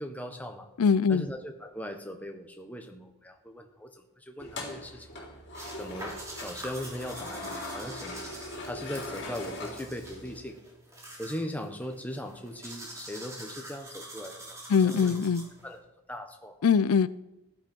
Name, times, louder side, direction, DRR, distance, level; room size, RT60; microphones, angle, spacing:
voice 1, 0.0-0.7 1.1-5.1 5.8-8.3 8.6-10.6 11.2-15.2 15.6-15.8 16.1-16.6, equal, 5° left, 4 dB, 1.2 m, -39 dB
voice 2, 0.8-1.3 14.7-15.5 16.6-17.1, left 6 dB, 80° left, 17 dB, 0.4 m, -22 dB
sound 1, 4.4-10.4, left 1 dB, 50° left, 3.5 m, -41 dB
sound 2, 5.5-15.8, right 1 dB, 15° right, 3.1 m, -45 dB
15.5 x 11.0 x 4.5 m, 0.89 s
head